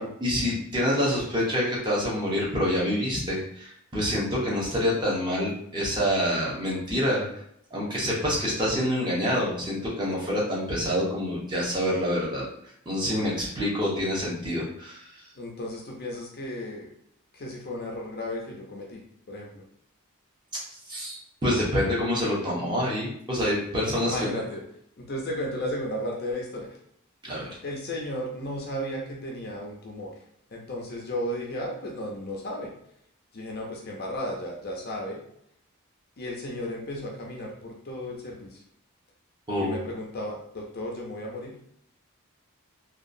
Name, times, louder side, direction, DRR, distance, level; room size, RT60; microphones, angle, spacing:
voice 1, 0.2-7.3 7.7-12.4 12.9-15.1 20.9-24.2 27.2-27.5 39.5-39.8, equal, 20° right, -5 dB, 0.8 m, -27 dB
voice 2, 13.1-13.4 15.4-16.9 17.3-19.6 24.0-24.6 25.0-26.8 27.6-30.1 30.5-32.7 33.3-35.2 36.2-38.6 39.6-41.5, left 1 dB, 45° left, -1 dB, 0.5 m, -34 dB
2.8 x 2.3 x 2.5 m, 0.70 s
head